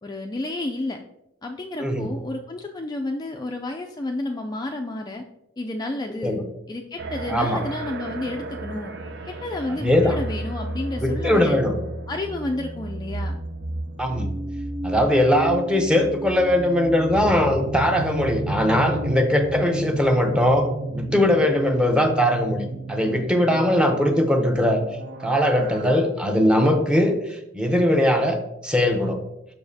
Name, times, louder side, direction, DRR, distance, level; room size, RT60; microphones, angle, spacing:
voice 1, 0.0-1.0 1.4-5.3 5.6-6.4 6.7-8.9 9.3-11.6 12.1-13.4, left 2 dB, 20° left, 2 dB, 0.3 m, -31 dB
sound 1, 7.0-26.0, right 2 dB, 60° right, 0.6 m, -32 dB
voice 2, 7.3-7.6 9.7-10.2 11.0-11.7 14.0-14.3 14.8-24.8 25.2-28.4 28.6-29.2, left 1 dB, 5° right, 4 dB, 0.7 m, -20 dB
6.9 x 5.8 x 2.7 m, 0.87 s
head